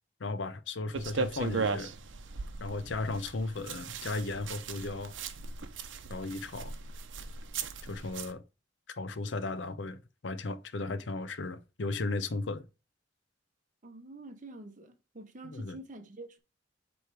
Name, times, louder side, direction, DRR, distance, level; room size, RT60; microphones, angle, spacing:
voice 1, 0.2-1.9 2.6-5.1 6.1-6.8 7.8-8.4 9.0-12.6 15.5-15.8, left 3 dB, 75° left, 0.7 m, -35 dB
sound 1, 0.9-8.3, right 4 dB, 85° right, 0.7 m, -37 dB
voice 2, 13.8-16.4, right 2 dB, 45° right, 0.9 m, -47 dB
7.9 x 3.2 x 4.7 m
head